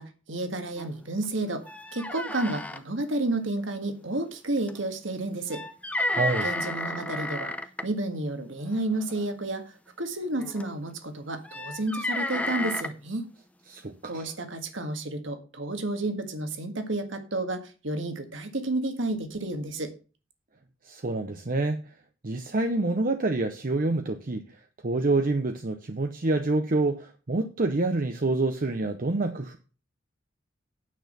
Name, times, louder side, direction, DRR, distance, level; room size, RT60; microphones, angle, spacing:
voice 1, 0.0-1.6 1.9-5.6 6.4-7.6 7.8-9.6 10.0-13.2 14.1-19.9, right 2 dB, 70° right, 1.7 m, -31 dB
sound 1, 0.8-0.9 1.2-1.3 1.6-2.8 4.7-4.8 5.5-7.8 8.9-9.2 10.4-10.7 11.4-12.9, left 1 dB, 5° left, 0.7 m, -32 dB
voice 2, 6.1-6.5 13.7-14.3 20.8-21.8 22.2-24.4 24.8-29.6, right 2 dB, 45° right, 0.8 m, -27 dB
9.3 x 6.2 x 6.7 m
head